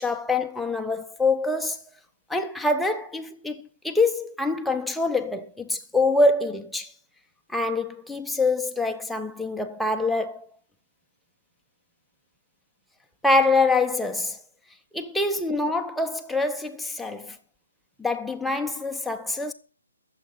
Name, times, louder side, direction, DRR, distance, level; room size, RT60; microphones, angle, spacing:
voice 1, 0.0-1.8 2.3-6.9 7.5-10.5 13.2-14.4 14.9-17.4 18.0-19.5, left 2 dB, ahead, 1.0 m, -25 dB
13.0 x 7.6 x 6.3 m
hypercardioid pair, 150°, 0 cm